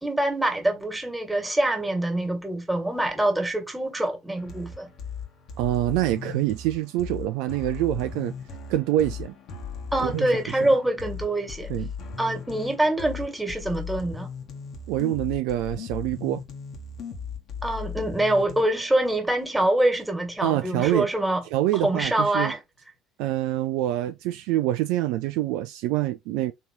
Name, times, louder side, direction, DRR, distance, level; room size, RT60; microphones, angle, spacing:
voice 1, 0.0-4.9 9.9-11.7 12.2-14.3 17.6-21.4 21.8-22.6, right 1 dB, 5° right, 1.7 m, -25 dB
sound 1, 4.4-18.6, left 6 dB, 55° left, 1.1 m, -37 dB
voice 2, 5.6-8.3 8.7-9.3 10.0-10.3 10.6-10.7 11.7-11.9 14.9-16.4 20.4-21.1 21.5-22.5 23.2-26.5, right 14 dB, 65° right, 0.3 m, -25 dB
4.0 x 3.0 x 2.8 m
hypercardioid pair, 60°, 0 cm